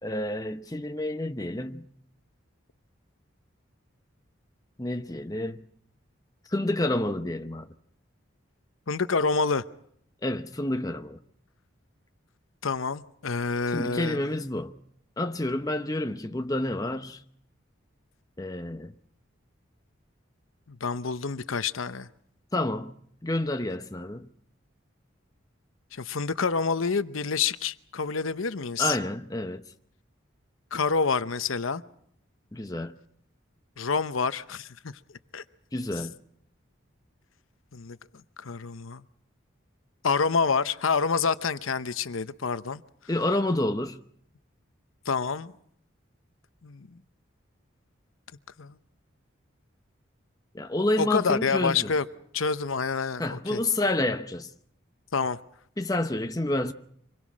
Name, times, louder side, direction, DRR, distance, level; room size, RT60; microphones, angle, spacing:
voice 1, 0.0-1.9 4.8-5.6 6.5-7.7 10.2-11.2 13.7-14.7 15.2-17.2 18.4-18.9 22.5-24.3 28.8-29.6 32.5-33.0 35.7-36.2 43.1-44.0 50.5-51.9 53.2-54.5 55.8-56.7, left 1 dB, 20° left, 0.8 m, -29 dB
voice 2, 8.9-9.6 12.6-14.3 20.7-22.1 25.9-29.0 30.7-31.8 33.8-35.0 35.3-35.4 37.7-39.0 40.0-42.8 45.0-45.5 46.6-46.9 48.6-48.8 51.0-52.0 52.3-53.6 55.1-55.4, left 5 dB, 85° left, 0.9 m, -28 dB
25.5 x 21.5 x 6.2 m
head